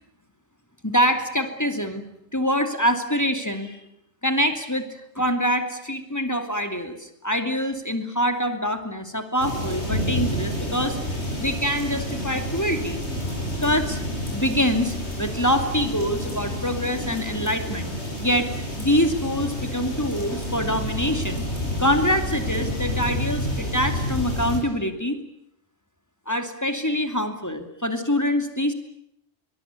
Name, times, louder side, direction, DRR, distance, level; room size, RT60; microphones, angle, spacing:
voice 1, 0.8-2.1 2.3-3.8 4.2-4.9 5.2-11.0 11.4-13.0 13.6-14.0 14.3-17.9 18.2-18.5 18.8-21.5 21.8-25.2 26.3-28.7, equal, 15° left, 7 dB, 2.6 m, -25 dB
sound 1, 9.4-24.6, left 1 dB, 75° left, 7.7 m, -29 dB
23.0 x 21.5 x 9.7 m, 0.76 s
omnidirectional pair, 1.1 m